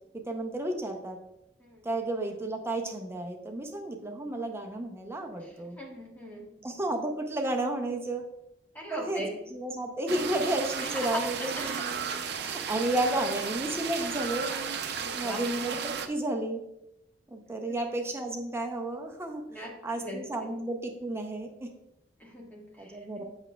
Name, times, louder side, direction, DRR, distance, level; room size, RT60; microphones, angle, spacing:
voice 1, 0.1-1.2 1.8-5.8 6.6-8.2 8.9-9.2 9.5-11.6 12.4-14.5 15.1-16.6 17.3-21.7 22.8-23.2, right 1 dB, 15° right, 3 dB, 0.6 m, -32 dB
voice 2, 5.8-6.5 8.7-9.3 11.0-11.2 11.6-11.8 15.0-15.4 19.5-20.2 22.2-22.9, equal, 10° left, -3 dB, 1.5 m, -39 dB
sound 1, 10.1-16.1, right 6 dB, 60° right, 0.5 m, -34 dB
8.0 x 6.0 x 2.2 m, 0.84 s
head